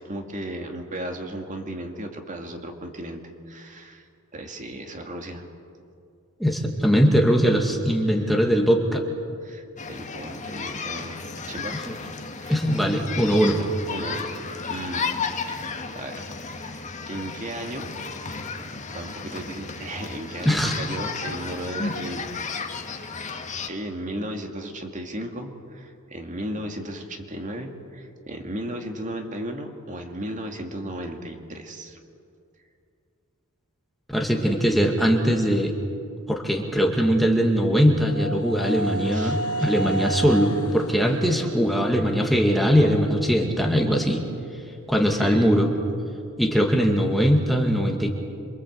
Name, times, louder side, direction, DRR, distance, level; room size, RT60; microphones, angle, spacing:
voice 1, 0.0-3.2 3.5-4.1 4.3-5.5 8.1-8.3 9.4-11.8 12.4-12.6 12.9-13.1 13.4-14.4 14.7-15.2 15.4-17.9 18.9-22.3 22.9-23.2 23.6-32.0 39.1-39.4 45.1-45.6, right 1 dB, 35° right, 3 dB, 2.2 m, -35 dB
voice 2, 6.4-9.0 12.5-13.6 20.4-20.7 34.1-35.7 36.3-44.2 44.9-45.7 46.4-48.1, equal, ahead, 1 dB, 2.2 m, -21 dB
sound 1, 9.8-23.7, left 4 dB, 35° left, 1.7 m, -33 dB
sound 2, 37.5-43.1, right 2 dB, 85° left, 1.1 m, -33 dB
27.5 x 24.0 x 8.1 m, 2.4 s
head